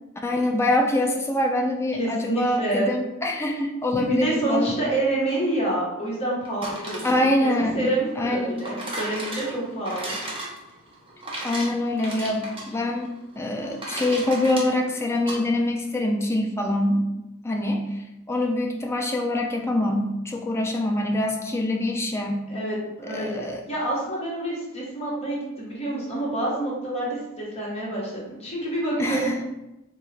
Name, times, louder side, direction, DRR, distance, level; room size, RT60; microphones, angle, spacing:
voice 1, 0.2-4.9 7.0-7.9 8.2-8.7 11.4-13.1 13.4-17.1 17.4-18.0 18.3-22.4 23.1-23.6 29.0-29.4, left 1 dB, 10° left, 1 dB, 0.3 m, -24 dB
voice 2, 1.9-2.9 3.9-7.5 7.7-10.2 22.5-29.5, right 1 dB, 30° left, -5 dB, 1.0 m, -28 dB
sound 1, 6.5-15.4, right 1 dB, 25° right, 0.6 m, -36 dB
3.7 x 2.3 x 3.2 m, 0.97 s
head